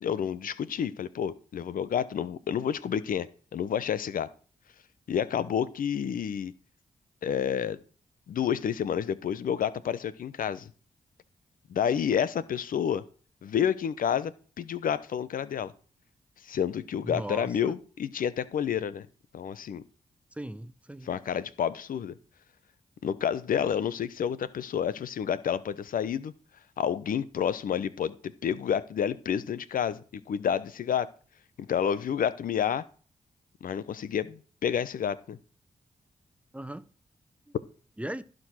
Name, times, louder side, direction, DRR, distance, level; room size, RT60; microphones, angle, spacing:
voice 1, 0.0-4.3 5.1-6.5 7.2-7.8 8.3-10.7 11.7-13.0 13.4-15.7 16.4-19.1 19.3-19.8 21.0-22.1 23.0-26.3 26.8-31.1 31.6-32.8 33.6-35.4, left 8 dB, 80° left, 0.8 m, -29 dB
voice 2, 17.1-17.7 20.4-21.1 36.5-36.9 38.0-38.2, right 1 dB, 10° right, 0.9 m, -37 dB
15.5 x 5.2 x 6.2 m
cardioid pair, 50°, 14 cm